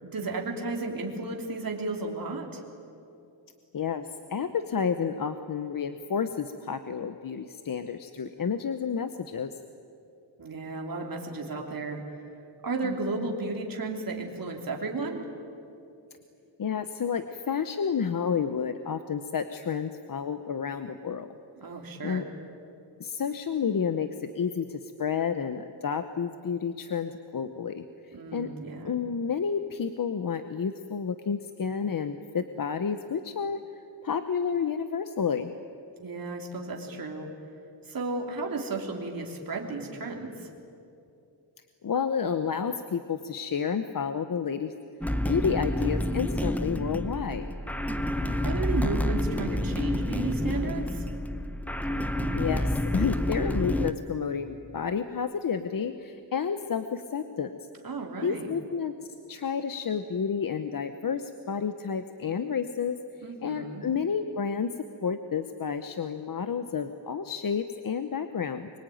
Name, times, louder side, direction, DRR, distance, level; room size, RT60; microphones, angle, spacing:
voice 1, 0.0-2.6 10.4-12.2 12.6-15.3 21.6-22.3 28.1-29.0 36.0-37.3 37.8-40.5 48.4-51.1 57.8-58.5 63.2-63.9, right 3 dB, 50° right, 1 dB, 3.2 m, -34 dB
voice 2, 3.7-9.6 12.8-13.3 16.6-21.3 22.0-22.2 23.0-28.5 28.8-35.5 41.8-44.7 45.3-47.4 52.3-57.5 58.2-58.9 59.3-63.0 63.4-64.7 65.0-68.7, left 6 dB, 50° left, 9 dB, 0.9 m, -30 dB
sound 1, 45.0-53.9, left 1 dB, 5° left, 0.7 m, -29 dB
24.0 x 23.0 x 9.2 m, 2.6 s
wide cardioid pair, 160°, 45 cm